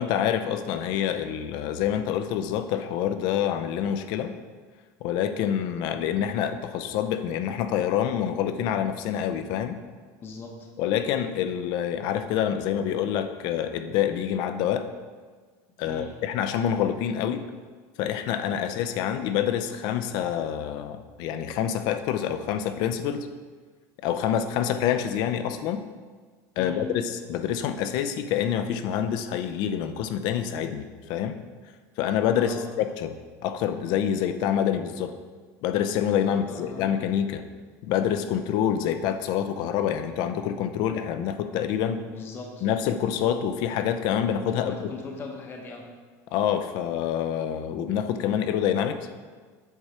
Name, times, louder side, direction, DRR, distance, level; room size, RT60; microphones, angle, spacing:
voice 1, 0.0-4.3 5.0-9.8 10.8-14.9 15.8-17.5 18.0-23.3 24.0-25.8 26.6-31.4 32.0-33.2 33.4-35.2 35.6-37.4 37.8-42.0 42.6-44.9 46.3-49.0, left 9 dB, 55° left, 9 dB, 0.6 m, -27 dB
voice 2, 10.2-10.7 15.8-16.2 26.6-26.9 32.4-32.7 36.2-37.1 42.1-42.7 44.6-45.9, left 4 dB, 25° left, 1 dB, 0.9 m, -39 dB
8.2 x 4.9 x 4.3 m, 1.5 s
supercardioid pair, 145°, 9 cm